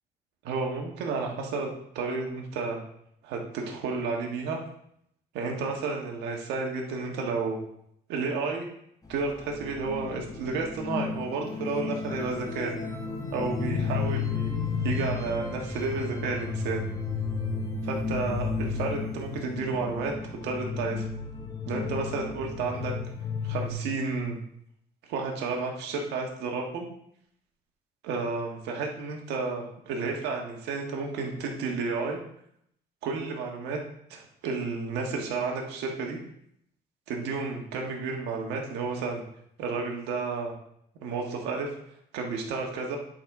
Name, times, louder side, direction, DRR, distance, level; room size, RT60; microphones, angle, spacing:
voice 1, 0.4-2.8 3.2-4.6 5.3-7.6 8.1-8.7 9.1-12.7 13.3-16.8 17.8-20.1 20.4-21.1 21.7-22.9 23.4-24.4 25.1-26.9 28.0-32.2 33.0-33.8 34.1-36.2 37.1-39.2 39.6-40.5 41.0-41.7 42.1-43.0, right 4 dB, 90° right, 1 dB, 1.5 m, -31 dB
sound 1, 9.1-23.7, left 5 dB, 20° left, 1.3 m, -33 dB
10.5 x 4.0 x 4.8 m, 0.73 s
cardioid pair, 110°, 17 cm